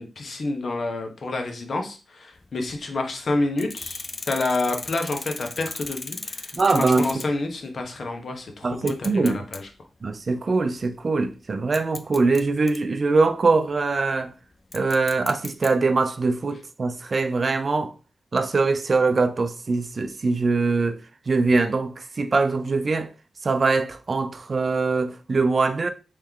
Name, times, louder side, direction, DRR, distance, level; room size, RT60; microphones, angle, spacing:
voice 1, 0.0-9.7, left 2 dB, 55° left, 0.9 m, -29 dB
sound 1, 2.4-2.8 3.6-7.5 7.8-7.9 8.7-9.7 10.1-10.4 11.2-11.3 11.7-12.8 14.7-15.7, left 3 dB, 30° left, 0.3 m, -36 dB
voice 2, 6.5-7.1 8.6-9.5 10.0-14.3 14.7-17.9 18.3-21.0 21.3-23.1 23.4-25.9, right 3 dB, 45° right, 0.4 m, -22 dB
3.4 x 3.2 x 3.6 m
wide cardioid pair, 100°, 0 cm